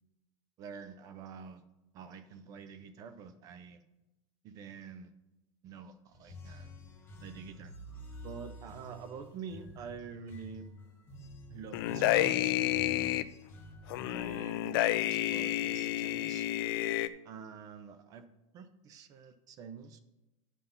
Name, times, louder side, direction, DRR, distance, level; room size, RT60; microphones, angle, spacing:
voice 1, 0.6-1.6 1.9-3.8 4.4-5.1 5.6-6.7 7.2-7.7 8.2-10.7 11.5-12.6 12.9-13.3 14.1-16.5 17.2-18.3 18.5-20.0, right 6 dB, 20° right, 11 dB, 0.4 m, -47 dB
sound 1, 6.1-14.2, equal, 15° left, 1.1 m, -49 dB
sound 2, 11.7-13.2 13.9-17.1, left 14 dB, 45° left, 0.4 m, -30 dB
9.9 x 5.8 x 5.4 m, 1.0 s
supercardioid pair, 175°, 17 cm